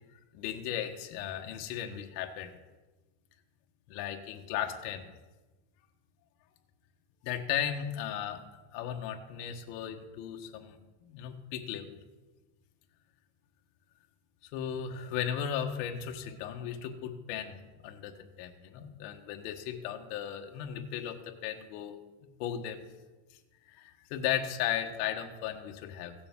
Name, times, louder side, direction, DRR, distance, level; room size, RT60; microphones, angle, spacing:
voice 1, 0.3-2.6 3.9-5.1 7.2-8.4 8.7-12.0 14.4-17.6 17.8-22.0 22.4-22.8 23.7-26.1, left 9 dB, 65° left, 3 dB, 1.4 m, -36 dB
17.0 x 6.8 x 3.7 m, 1.2 s
supercardioid pair, 145°, 49 cm